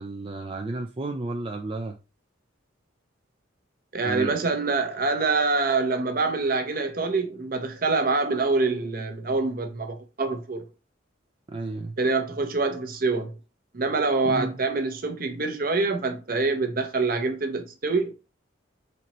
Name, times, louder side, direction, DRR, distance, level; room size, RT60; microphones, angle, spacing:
voice 1, 0.0-2.0 4.0-4.4 11.5-11.9 14.2-14.5, right 2 dB, 30° right, 0.4 m, -32 dB
voice 2, 3.9-10.6 12.0-13.3 13.7-18.1, right 3 dB, 50° right, 0.8 m, -25 dB
4.2 x 4.2 x 3.0 m
head